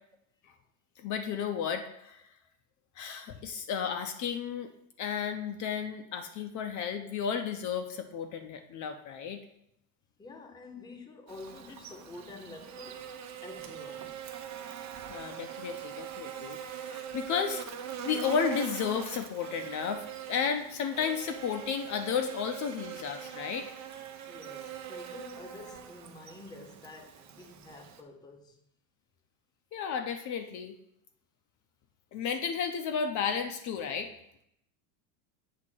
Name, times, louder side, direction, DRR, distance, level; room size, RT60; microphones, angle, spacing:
voice 1, 1.0-2.2 3.0-4.7 5.0-9.4 15.1-17.6 18.0-23.7 29.7-30.7 32.1-34.1, left 7 dB, 45° left, 0.6 m, -33 dB
voice 2, 10.2-13.0 13.4-14.2 24.3-28.6, left 2 dB, 10° left, 0.7 m, -48 dB
Buzz, 11.3-28.0, right 9 dB, 45° right, 0.8 m, -42 dB
7.5 x 2.8 x 6.0 m
supercardioid pair, 125°, 41 cm